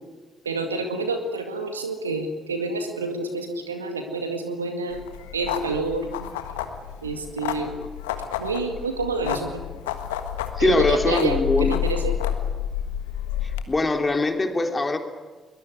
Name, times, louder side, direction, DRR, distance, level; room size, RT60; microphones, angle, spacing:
voice 1, 0.4-5.0 5.3-6.3 7.0-7.7 8.4-9.6 10.6-12.2, right 3 dB, 85° right, 6 dB, 2.0 m, -28 dB
sound 1, 4.9-13.6, left 10 dB, 75° left, 1.5 m, -30 dB
voice 2, 10.6-11.7 13.4-15.0, left 2 dB, 25° left, 5 dB, 3.4 m, -22 dB
22.5 x 20.5 x 9.5 m, 1.4 s
figure-of-eight pair, 45°, 0 cm